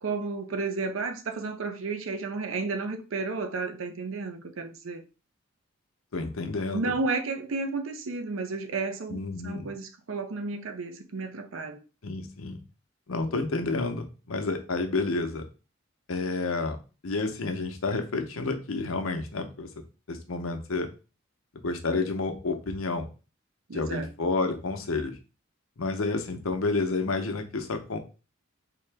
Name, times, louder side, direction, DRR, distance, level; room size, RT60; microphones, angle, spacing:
voice 1, 0.0-5.0 6.7-11.8 23.7-24.1, right 3 dB, 70° right, 0.6 m, -32 dB
voice 2, 6.1-6.9 9.1-9.7 12.0-12.6 13.1-15.4 16.1-16.8 17.0-19.7 20.1-20.9 21.6-23.1 23.7-25.1 25.8-28.0, left 3 dB, 80° left, 0.7 m, -30 dB
3.8 x 2.8 x 3.3 m
head